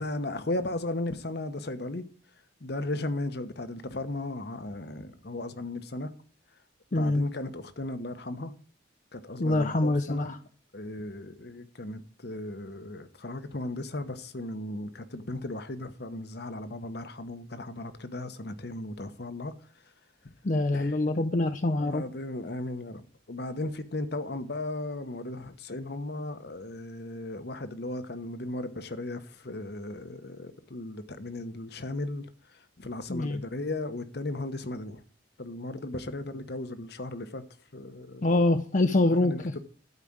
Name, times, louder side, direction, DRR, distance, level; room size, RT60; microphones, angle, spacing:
voice 1, 0.0-2.1 2.6-6.1 7.0-8.5 9.1-10.4 10.7-19.5 20.7-21.0 21.8-23.0 23.3-32.3 32.8-35.0 35.4-37.4 37.7-38.3 39.1-39.6, left 2 dB, 60° left, 1.0 m, -36 dB
voice 2, 6.9-7.2 9.4-10.4 20.4-22.0 33.1-33.4 38.2-39.6, left 2 dB, 40° left, 0.5 m, -25 dB
12.5 x 5.0 x 8.8 m
head